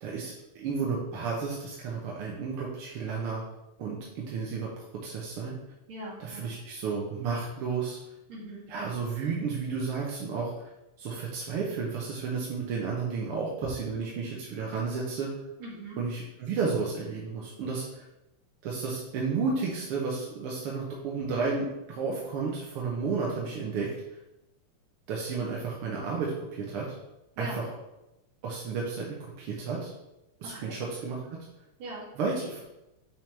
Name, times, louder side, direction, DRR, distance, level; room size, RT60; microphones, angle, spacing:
voice 1, 0.0-3.4 3.8-4.7 5.0-5.5 6.2-8.0 8.7-10.5 11.0-15.3 16.0-18.0 18.6-23.9 25.1-27.0 27.4-27.6 28.4-29.9 30.4-31.4 32.2-32.6, right 4 dB, 65° right, -3 dB, 1.5 m, -32 dB
voice 2, 5.9-6.5 8.3-8.6 15.6-16.0 27.4-27.6 30.5-30.8 31.8-32.1, right 1 dB, 45° right, -6 dB, 2.9 m, -40 dB
6.8 x 6.2 x 3.4 m, 0.90 s
omnidirectional pair, 3.5 m